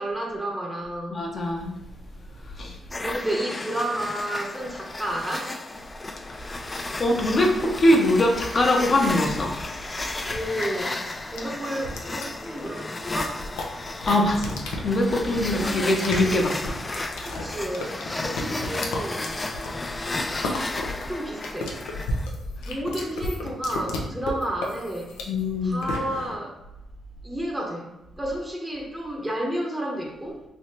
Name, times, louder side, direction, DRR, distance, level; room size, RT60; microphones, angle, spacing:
voice 1, 0.0-1.2 3.0-5.6 10.3-11.0 11.3-14.0 15.5-16.6 17.3-19.3 21.0-21.8 22.6-25.1 25.6-26.6 27.2-30.4, right 1 dB, 20° right, -1 dB, 0.8 m, -31 dB
voice 2, 1.1-1.7 2.6-2.8 6.3-6.7 7.0-9.5 14.1-16.5 25.3-25.8, left 1 dB, 45° left, 2 dB, 0.8 m, -22 dB
sound 1, 2.9-22.3, left 2 dB, 25° left, 0.3 m, -33 dB
sound 2, 9.3-26.4, left 1 dB, 85° left, 0.5 m, -34 dB
3.3 x 2.8 x 2.8 m, 0.92 s
supercardioid pair, 55°, 0 cm